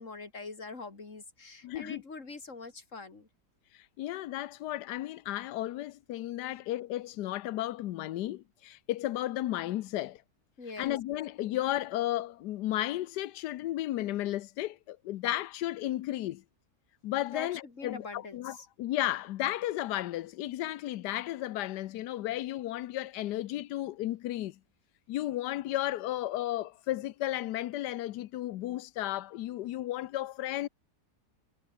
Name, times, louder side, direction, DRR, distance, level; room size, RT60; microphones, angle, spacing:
voice 1, 0.0-3.3 10.6-10.9 17.3-18.7, left 3 dB, 50° left, 3.5 m, -44 dB
voice 2, 1.6-2.0 3.7-10.2 10.8-16.4 17.0-24.5 25.1-30.7, left 14 dB, 90° left, 1.3 m, -34 dB
omnidirectional pair, 1.7 m